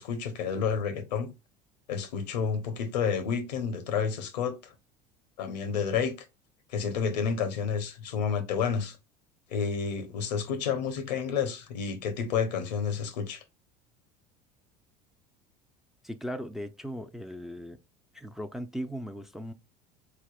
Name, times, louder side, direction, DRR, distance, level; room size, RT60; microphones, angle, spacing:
voice 1, 0.0-1.3 1.9-4.7 5.4-6.2 6.7-9.0 9.5-13.4, left 6 dB, 80° left, 0.8 m, -30 dB
voice 2, 16.0-17.8 18.1-19.5, equal, ahead, 0.4 m, -38 dB
4.1 x 3.4 x 2.3 m
hypercardioid pair, 75°, 21 cm